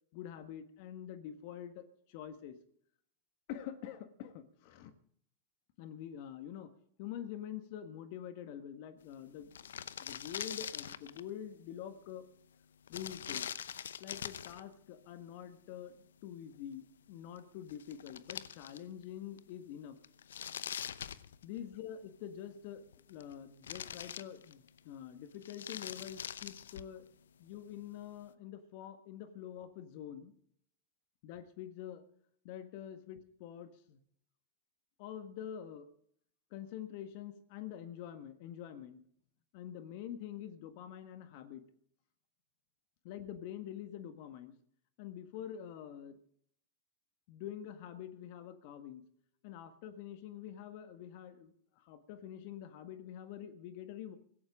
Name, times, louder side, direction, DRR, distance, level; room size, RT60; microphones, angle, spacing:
voice 1, 0.1-2.5 3.5-4.9 5.8-6.7 7.0-9.7 10.0-12.3 12.9-13.5 14.0-20.0 21.4-22.8 23.1-27.1 27.4-30.3 31.2-32.0 32.4-34.0 35.0-35.9 36.5-39.0 39.5-41.6 43.0-44.5 45.0-46.2 47.3-49.0 49.4-54.2, left 10 dB, 55° left, 9 dB, 1.6 m, -46 dB
sound 1, 9.1-9.2 9.4-11.3 12.9-14.6 17.4-17.5 17.7-19.0 19.4-19.5 20.0-21.8 22.8-23.3 23.6-24.8 25.3-27.0, left 8 dB, 75° left, 0.7 m, -43 dB
17.0 x 16.0 x 3.8 m, 0.64 s
figure-of-eight pair, 90°, 0 cm